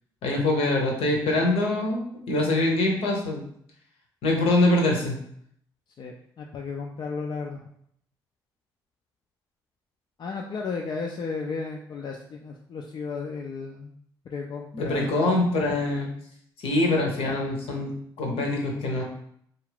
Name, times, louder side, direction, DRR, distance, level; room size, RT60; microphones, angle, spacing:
voice 1, 0.2-3.4 4.2-5.2 14.7-16.1 16.6-17.9 18.2-19.0, left 2 dB, 65° left, 0 dB, 0.7 m, -24 dB
voice 2, 6.0-7.6 10.2-13.9 14.3-15.5, left 4 dB, 45° left, 0 dB, 0.4 m, -34 dB
2.4 x 2.4 x 3.3 m, 0.67 s
hypercardioid pair, 50°, 10 cm